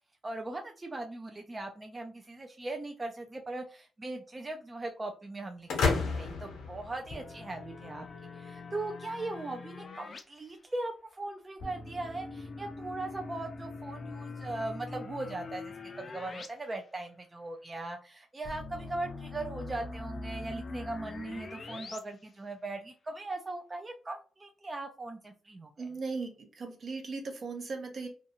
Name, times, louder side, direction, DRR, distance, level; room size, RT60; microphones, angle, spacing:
voice 1, 0.2-8.0 8.3-26.0, right 2 dB, 25° right, 3 dB, 0.4 m, -39 dB
sound 1, 5.7-7.6, left 4 dB, 85° left, 0.8 m, -31 dB
sound 2, 7.1-10.2 11.6-16.5 16.8-16.9 18.4-22.0, left 3 dB, 45° left, 0.5 m, -43 dB
voice 2, 25.8-28.1, right 4 dB, 55° right, 4 dB, 0.7 m, -38 dB
2.5 x 2.3 x 2.8 m, 0.38 s
cardioid pair, 75°, 0 cm